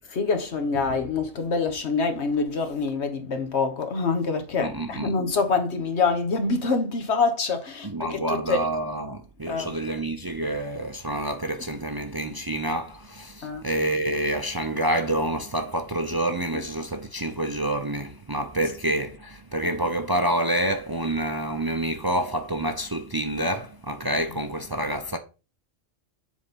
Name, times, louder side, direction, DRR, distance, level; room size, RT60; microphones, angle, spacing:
voice 1, 0.1-8.7 9.5-9.7 13.4-13.6 16.5-16.6, left 4 dB, 75° left, 1.5 m, -26 dB
voice 2, 4.6-5.2 7.8-25.2, right 1 dB, 25° right, 0.5 m, -28 dB
7.1 x 4.2 x 5.2 m
omnidirectional pair, 1.1 m